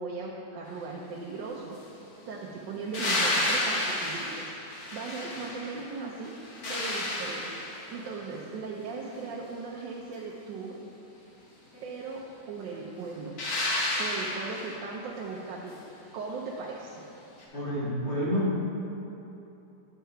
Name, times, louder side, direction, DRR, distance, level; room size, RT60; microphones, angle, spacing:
voice 1, 0.0-1.8 2.3-6.3 6.7-10.8 11.8-13.3 14.0-15.8 16.1-17.0, right 4 dB, 85° right, -4 dB, 1.4 m, -38 dB
sound 1, 2.9-5.8 6.2-8.0 13.4-14.8 17.4-17.5, left 1 dB, 60° left, 1.8 m, -31 dB
voice 2, 17.5-18.6, equal, 40° left, -8 dB, 2.3 m, -29 dB
9.1 x 4.5 x 5.6 m, 2.9 s
omnidirectional pair, 1.9 m